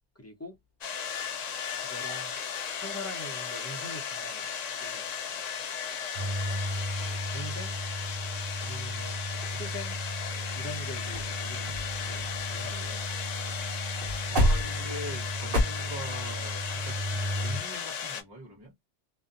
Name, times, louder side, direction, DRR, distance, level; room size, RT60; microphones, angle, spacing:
voice 1, 0.2-0.5 1.8-2.3 2.8-4.5 4.8-5.1 6.2-6.6 7.3-7.7 8.6-9.2 9.5-10.0 10.5-11.7 12.1-13.0, equal, 15° left, 0.7 m, -43 dB
sound 1, 0.8-18.2, left 7 dB, 60° left, 0.4 m, -36 dB
sound 2, 6.2-17.6, equal, 90° right, 0.9 m, -35 dB
sound 3, 9.3-10.2 10.7-10.8 11.1-11.3 11.6-13.2 13.5-13.6 13.9-15.6, equal, 55° right, 1.0 m, -29 dB
voice 2, 14.2-18.7, right 1 dB, 25° right, 0.9 m, -42 dB
2.6 x 2.3 x 2.5 m
omnidirectional pair, 1.1 m